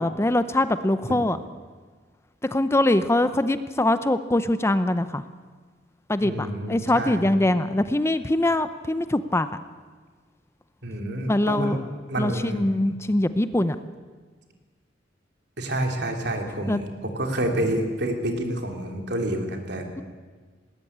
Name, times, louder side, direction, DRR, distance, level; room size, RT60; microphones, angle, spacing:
voice 1, 0.0-1.4 2.5-5.2 6.1-9.5 11.3-11.8 12.2-13.8 16.7-16.8 20.0-20.1, left 1 dB, 15° left, 12 dB, 0.7 m, -23 dB
voice 2, 6.2-7.3 10.8-11.8 12.1-12.6 15.6-19.9, right 1 dB, 65° right, 3 dB, 3.2 m, -28 dB
19.0 x 19.0 x 8.7 m, 1.5 s
head